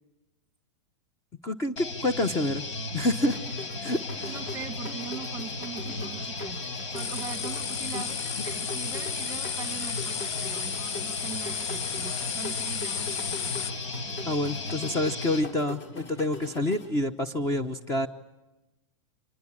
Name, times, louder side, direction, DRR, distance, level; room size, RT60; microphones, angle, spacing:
voice 1, 1.4-2.6 2.9-3.4 3.8-4.3 14.3-18.1, left 1 dB, 20° left, 11 dB, 1.0 m, -28 dB
sound 1, 1.8-15.5, left 3 dB, 75° left, 4.7 m, -36 dB
sound 2, 3.2-16.9, left 2 dB, 40° left, 4.9 m, -42 dB
voice 2, 4.1-13.6, right 8 dB, 15° right, 13 dB, 1.4 m, -42 dB
sound 3, 6.9-13.7, left 8 dB, 55° left, 1.1 m, -34 dB
26.5 x 20.5 x 9.9 m, 1.0 s
supercardioid pair, 155°, 16 cm